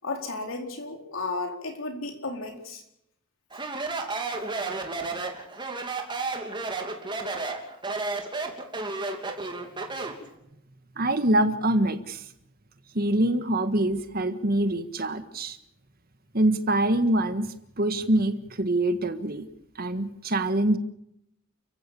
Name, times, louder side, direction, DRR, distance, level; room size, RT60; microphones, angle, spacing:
voice 1, 0.0-2.8, left 3 dB, 75° left, 3 dB, 4.5 m, -33 dB
Speech, 3.5-10.2, right 3 dB, 25° right, 3.0 m, -32 dB
voice 2, 11.0-12.2 12.9-15.6 16.3-19.4 19.8-20.8, right 1 dB, 50° right, 10 dB, 1.7 m, -25 dB
30.0 x 15.5 x 7.1 m, 0.79 s
head